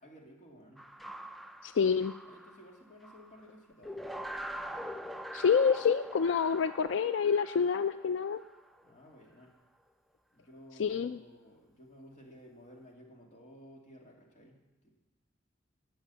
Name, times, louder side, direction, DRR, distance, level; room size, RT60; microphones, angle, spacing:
voice 1, 0.0-0.9 2.2-4.1 8.8-9.5 10.3-14.9, equal, 40° left, -1 dB, 2.4 m, -55 dB
sound 1, 0.8-3.4 3.8-8.9, equal, ahead, 0.4 m, -44 dB
voice 2, 1.6-2.1 5.3-8.4 10.8-11.2, left 6 dB, 75° left, 11 dB, 0.4 m, -27 dB
17.0 x 6.3 x 7.0 m, 1.1 s
head